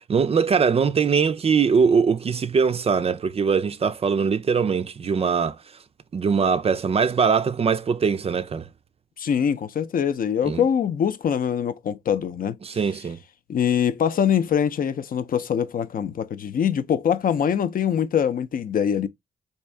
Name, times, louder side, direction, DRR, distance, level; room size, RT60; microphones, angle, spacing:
voice 1, 0.0-5.6 6.1-8.6 10.4-10.6 12.6-13.2, right 6 dB, 35° right, 0.4 m, -21 dB
voice 2, 9.2-12.6 13.5-19.1, left 8 dB, 55° left, 0.5 m, -23 dB
3.5 x 2.7 x 3.2 m
cardioid pair, 65°, 17 cm